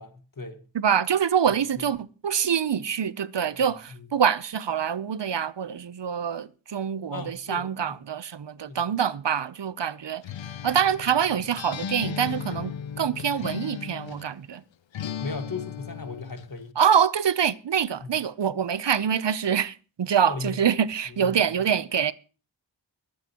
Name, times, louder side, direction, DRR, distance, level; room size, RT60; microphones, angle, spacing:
voice 1, 0.0-0.6 1.7-1.8 3.5-3.6 3.9-4.1 7.1-8.0 8.7-8.9 15.2-16.8 18.0-18.1 20.2-20.6 21.1-21.4, left 3 dB, 45° left, 1.7 m, -37 dB
voice 2, 0.7-10.2 10.6-14.6 16.8-22.1, right 8 dB, 65° right, 0.7 m, -25 dB
Acoustic guitar, 10.2-14.3 14.9-16.5, left 8 dB, 80° left, 0.7 m, -36 dB
23.5 x 8.5 x 2.9 m
wide cardioid pair, 50°, 45 cm